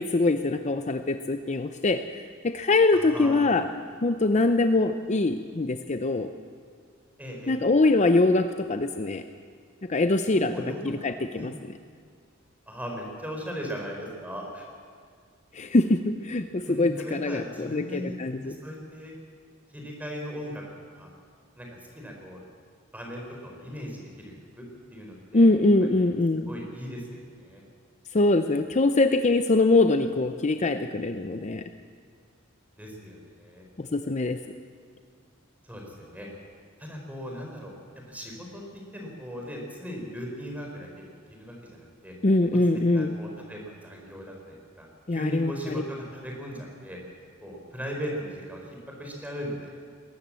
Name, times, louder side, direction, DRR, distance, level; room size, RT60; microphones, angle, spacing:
voice 1, 0.0-3.7 4.0-6.3 7.5-9.2 9.8-11.5 15.5-18.6 25.3-26.5 28.1-31.7 33.8-34.4 42.2-43.2 45.1-45.8, left 2 dB, 35° left, 8 dB, 0.7 m, -23 dB
voice 2, 2.9-3.5 7.2-7.6 10.3-10.8 11.4-11.5 12.7-14.7 16.6-18.2 18.4-19.1 19.7-20.6 20.9-21.1 21.6-22.4 22.9-24.6 24.9-25.5 25.9-26.0 26.5-27.6 32.8-33.7 35.7-36.3 36.8-37.7 38.1-38.6 38.9-41.1 41.4-42.2 42.9-47.0 47.4-48.6 49.0-49.7, equal, 10° right, 0 dB, 4.5 m, -38 dB
21.0 x 18.0 x 7.6 m, 2.1 s
head